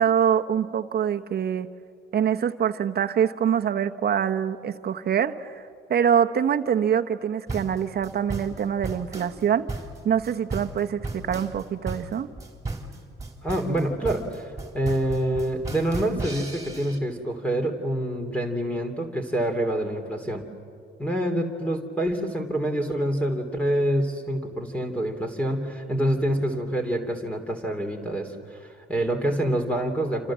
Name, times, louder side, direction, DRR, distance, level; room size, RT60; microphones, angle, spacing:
voice 1, 0.0-1.7 2.1-5.6 5.9-9.7 10.0-12.3, right 8 dB, 55° right, 7 dB, 1.1 m, -24 dB
sound 1, 7.5-17.0, right 3 dB, 15° right, 3.6 m, -35 dB
voice 2, 13.4-14.5 14.7-20.4 21.0-28.3 28.6-30.3, right 1 dB, 5° left, 3 dB, 3.2 m, -26 dB
28.0 x 28.0 x 7.5 m, 2.3 s
cardioid pair, 90°, 20 cm